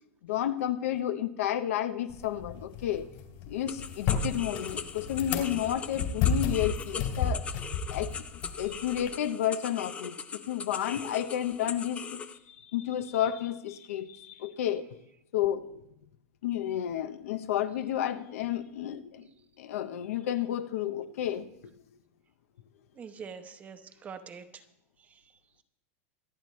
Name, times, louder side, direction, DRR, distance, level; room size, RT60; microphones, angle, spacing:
voice 1, 0.2-3.1 3.5-7.4 7.9-8.1 8.5-14.9 15.3-15.8 16.4-19.3 19.6-21.5, left 11 dB, 85° left, 10 dB, 0.9 m, -31 dB
sound 1, 2.1-9.1, left 6 dB, 50° left, 3.3 m, -33 dB
sound 2, 3.7-12.4, left 6 dB, 15° left, 0.5 m, -40 dB
voice 2, 23.0-24.6 25.1-25.2, right 6 dB, 20° right, 8 dB, 0.9 m, -44 dB
25.5 x 8.7 x 3.2 m, 0.81 s
supercardioid pair, 155°, 8 cm